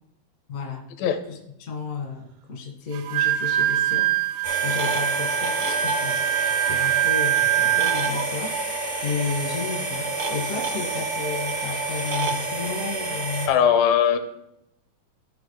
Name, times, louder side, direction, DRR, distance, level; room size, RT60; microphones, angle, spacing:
voice 1, 0.5-0.8 1.3-4.1 4.6-6.2 6.7-8.5 9.0-13.5, left 5 dB, 60° left, 0 dB, 0.8 m, -32 dB
Wind instrument woodwind instrument, 2.9-8.3, right 12 dB, 80° right, 2.2 m, -23 dB
sound 1, 4.4-13.5, right 3 dB, 55° right, 0.8 m, -28 dB
voice 2, 13.5-14.2, left 8 dB, 80° left, 8 dB, 2.4 m, -19 dB
14.0 x 5.6 x 3.1 m, 0.83 s
omnidirectional pair, 4.1 m